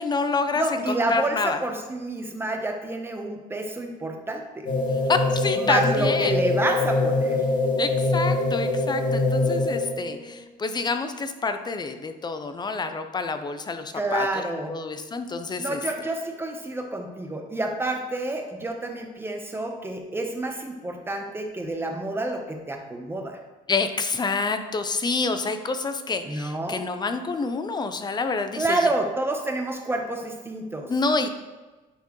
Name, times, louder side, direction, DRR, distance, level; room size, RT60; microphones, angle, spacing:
voice 1, 0.0-1.6 5.1-6.3 7.8-14.3 14.7-15.8 23.7-28.9 30.9-31.3, left 4 dB, 25° left, 8 dB, 0.6 m, -27 dB
voice 2, 0.5-4.7 5.6-7.4 13.9-14.8 15.6-23.4 26.2-26.8 28.5-30.9, right 2 dB, 15° right, 3 dB, 1.0 m, -29 dB
sound 1, 4.6-10.1, left 2 dB, 55° left, 2.1 m, -24 dB
10.5 x 4.5 x 3.2 m, 1.2 s
cardioid pair, 110°, 17 cm